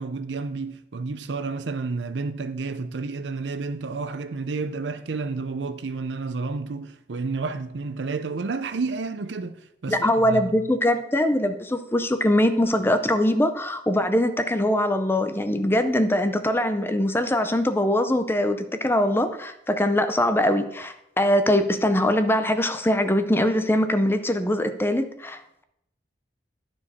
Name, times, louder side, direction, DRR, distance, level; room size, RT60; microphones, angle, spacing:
voice 1, 0.0-10.6, right 4 dB, 90° right, 0.6 m, -31 dB
voice 2, 9.9-25.6, left 1 dB, 15° left, 0.5 m, -22 dB
12.0 x 4.7 x 4.2 m
head